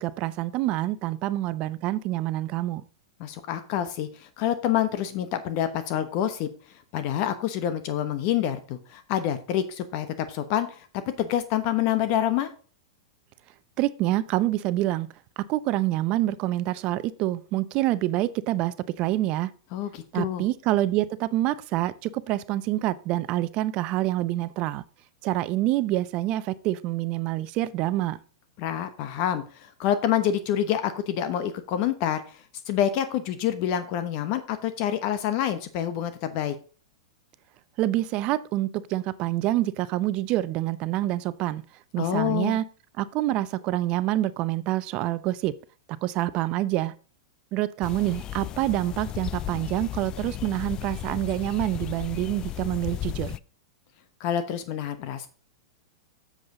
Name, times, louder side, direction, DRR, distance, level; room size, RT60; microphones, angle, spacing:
voice 1, 0.0-2.8 13.8-15.1 15.5-19.5 20.1-24.8 25.2-28.2 37.8-41.6 41.9-42.6 43.0-45.5 45.9-46.9 47.5-53.4, right 15 dB, 45° right, 0.7 m, -26 dB
voice 2, 3.2-12.5 19.7-20.4 28.6-36.5 42.0-42.6 54.2-55.3, left 10 dB, 50° left, 1.0 m, -27 dB
sound 1, 47.8-53.4, left 13 dB, 30° left, 0.4 m, -35 dB
7.8 x 7.4 x 3.8 m
hypercardioid pair, 105°, 2 cm